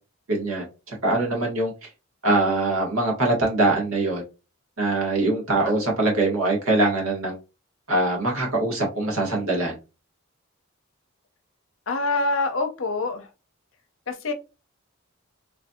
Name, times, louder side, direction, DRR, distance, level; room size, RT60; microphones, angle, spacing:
voice 1, 0.3-0.6 1.0-1.7 2.2-4.2 4.8-7.4 7.9-9.7, right 2 dB, 80° right, 0 dB, 1.4 m, -23 dB
voice 2, 11.9-13.3 14.1-14.3, left 3 dB, 65° left, 6 dB, 0.7 m, -25 dB
3.1 x 2.6 x 2.3 m, 0.29 s
head